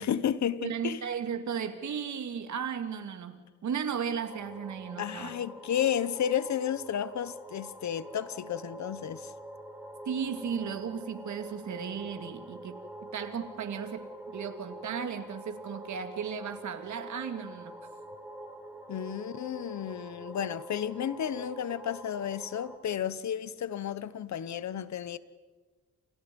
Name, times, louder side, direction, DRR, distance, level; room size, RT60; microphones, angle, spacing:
voice 1, 0.0-1.0 5.0-9.3 18.9-25.2, left 9 dB, 65° left, 1.2 m, -32 dB
voice 2, 0.6-5.4 10.1-14.0 14.3-17.7, right 7 dB, 70° right, 2.5 m, -35 dB
sound 1, 4.2-22.8, right 1 dB, 5° right, 4.5 m, -46 dB
29.0 x 29.0 x 5.5 m
cardioid pair, 105°, 30 cm